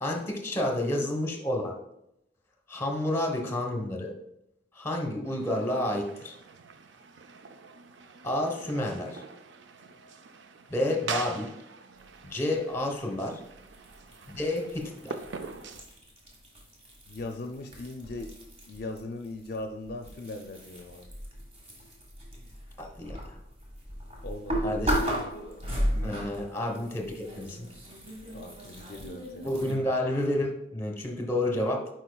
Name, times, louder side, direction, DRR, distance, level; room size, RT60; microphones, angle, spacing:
voice 1, 0.0-1.8 2.7-4.1 4.7-6.3 8.2-9.2 10.7-11.5 12.2-13.4 14.3-15.2 22.8-23.4 24.6-25.1 26.0-27.7 29.4-31.9, left 1 dB, 15° left, 1 dB, 1.0 m, -30 dB
sound 1, 5.2-15.8, right 5 dB, 75° right, 0.5 m, -43 dB
sound 2, 13.7-19.0 19.2-29.7, equal, 35° right, 1.7 m, -35 dB
voice 2, 17.1-18.3 18.7-21.1 24.2-24.7 28.3-29.5, left 2 dB, 55° left, 4 dB, 0.4 m, -39 dB
9.9 x 4.6 x 2.3 m, 0.81 s
head